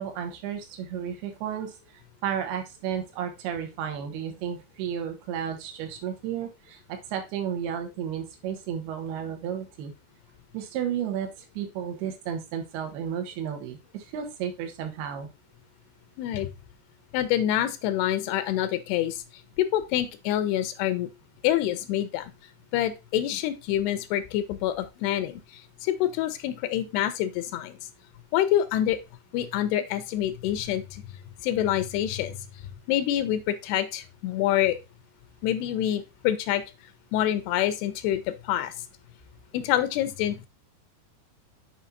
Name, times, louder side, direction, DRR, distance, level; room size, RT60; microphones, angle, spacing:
voice 1, 0.0-1.8 2.2-9.9 10.5-11.3 11.6-15.3, right 8 dB, 80° right, 6 dB, 3.0 m, -33 dB
voice 2, 16.2-16.5 17.1-19.2 19.6-21.1 21.4-22.3 22.7-25.4 25.8-27.8 28.3-29.0 29.3-31.0 31.4-32.4 32.9-34.8 35.4-36.6 37.1-38.7 39.5-40.4, left 12 dB, 85° left, 10 dB, 2.8 m, -26 dB
7.4 x 5.7 x 2.7 m, 0.25 s
omnidirectional pair, 4.6 m